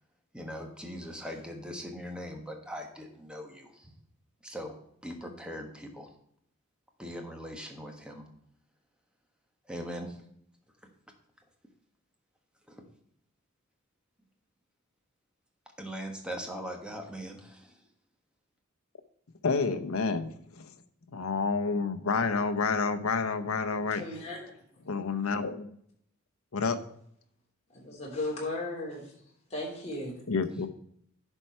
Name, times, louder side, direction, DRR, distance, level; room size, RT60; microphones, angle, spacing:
voice 1, 0.3-3.9 4.4-4.8 5.0-6.1 7.0-8.2 9.7-10.2 10.8-10.9 12.7-12.8 15.8-17.8, equal, 5° right, 3 dB, 1.3 m, -40 dB
voice 2, 19.4-20.7 21.1-24.0 24.8-25.7 26.5-26.8 30.3-30.7, left 4 dB, 75° left, 9 dB, 0.8 m, -29 dB
voice 3, 23.9-24.4 27.7-29.1 29.5-30.1, left 2 dB, 30° left, -3 dB, 3.3 m, -35 dB
11.0 x 4.5 x 5.6 m, 0.68 s
head